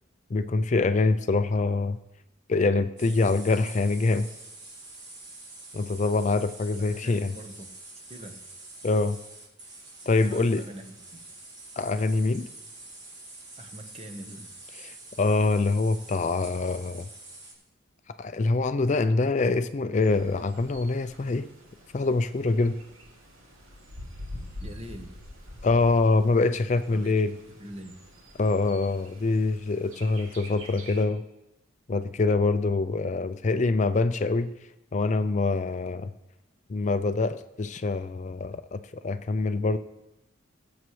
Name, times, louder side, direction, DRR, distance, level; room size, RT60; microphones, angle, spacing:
voice 1, 0.3-2.0 2.5-4.3 5.7-7.3 8.8-9.2 10.1-10.6 11.8-12.5 14.8-17.1 18.2-21.5 21.9-22.8 25.6-27.3 28.4-31.2 31.9-34.5 34.9-36.1 36.7-39.8, left 3 dB, 35° left, 10 dB, 0.4 m, -25 dB
sound 1, 3.0-17.5, right 2 dB, 55° right, 3.5 m, -46 dB
voice 2, 6.7-7.7 8.1-8.4 10.2-11.2 13.6-14.6 24.6-25.1 26.9-27.2 27.6-27.9, equal, 30° right, 5 dB, 1.0 m, -43 dB
Bird, 20.0-31.0, equal, 90° right, 2.8 m, -46 dB
21.5 x 8.0 x 3.2 m, 0.94 s
head